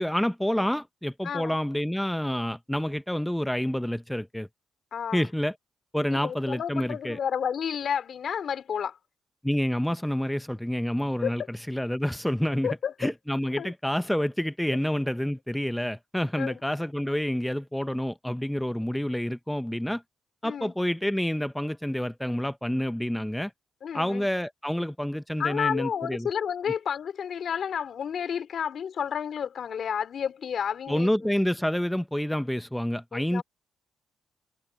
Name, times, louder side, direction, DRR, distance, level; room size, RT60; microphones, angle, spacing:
voice 1, 0.0-4.5 5.1-5.5 5.9-7.2 9.4-11.4 11.7-12.7 13.0-20.0 20.4-23.5 23.9-26.3 30.9-33.4, equal, 5° left, 0.5 m, -28 dB
voice 2, 1.2-1.6 4.9-5.3 6.1-9.0 11.2-11.3 12.6-13.1 13.6-13.7 16.4-16.6 20.4-20.7 23.8-24.3 25.4-31.3 33.1-33.4, left 7 dB, 60° left, 2.8 m, -31 dB
cardioid pair, 105°, 0 cm